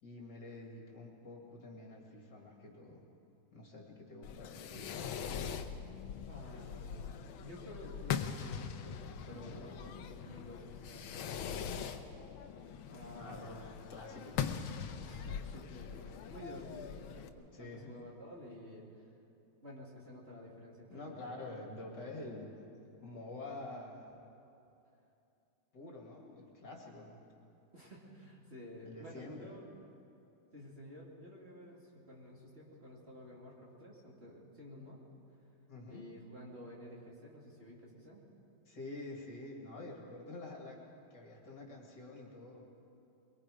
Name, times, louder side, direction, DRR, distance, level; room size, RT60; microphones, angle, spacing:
voice 1, 0.0-3.0 3.5-5.5 9.3-9.7 13.2-14.4 17.5-17.9 20.9-24.2 25.7-27.2 28.9-29.5 35.7-36.0 38.7-40.8 41.1-42.6, left 2 dB, 55° left, -1 dB, 3.1 m, -48 dB
Fireworks, 4.2-17.3, left 8 dB, 80° left, 1.6 m, -42 dB
voice 2, 6.3-7.1 7.4-9.0 9.3-12.0 12.9-13.8 15.0-19.0 19.6-21.5 27.7-29.7 30.5-35.0 35.9-38.2, equal, 30° right, -4 dB, 2.9 m, -51 dB
23.5 x 22.5 x 5.0 m, 2.7 s
omnidirectional pair, 2.3 m